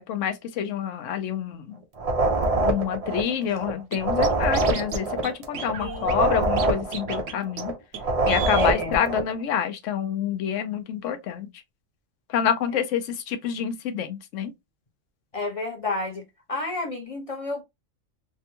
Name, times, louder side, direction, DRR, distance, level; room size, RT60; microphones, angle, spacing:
voice 1, 0.0-1.8 2.7-7.7 8.3-11.5 12.3-14.5, left 8 dB, 70° left, 1.0 m, -27 dB
sound 1, 2.0-3.7 4.0-7.7 8.0-9.3, right 2 dB, 40° right, 0.5 m, -25 dB
Scratching (performance technique), 3.9-4.0 4.2-5.0 5.2-5.3 5.5-6.7 6.9-7.3 7.6-7.7 7.9-8.0 8.3-8.7, right 7 dB, 70° right, 1.0 m, -33 dB
voice 2, 8.5-8.9 15.3-16.2 16.5-17.6, left 2 dB, 30° left, 0.7 m, -30 dB
3.4 x 2.2 x 2.8 m
omnidirectional pair, 1.4 m